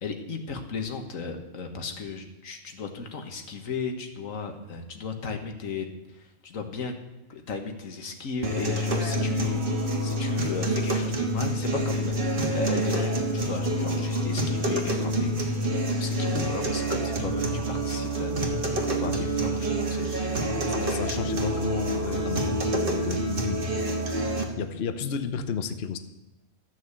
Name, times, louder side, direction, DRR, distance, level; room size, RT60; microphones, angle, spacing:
voice 1, 0.0-6.9 7.3-15.3 15.6-20.4, left 4 dB, 90° left, 5 dB, 1.7 m, -35 dB
sound 1, 8.4-24.4, right 1 dB, 45° right, 1.7 m, -27 dB
voice 2, 20.6-23.8 24.2-24.3 24.6-26.0, left 6 dB, 55° left, 9 dB, 1.0 m, -32 dB
13.0 x 6.2 x 8.1 m, 1.0 s
omnidirectional pair, 1.3 m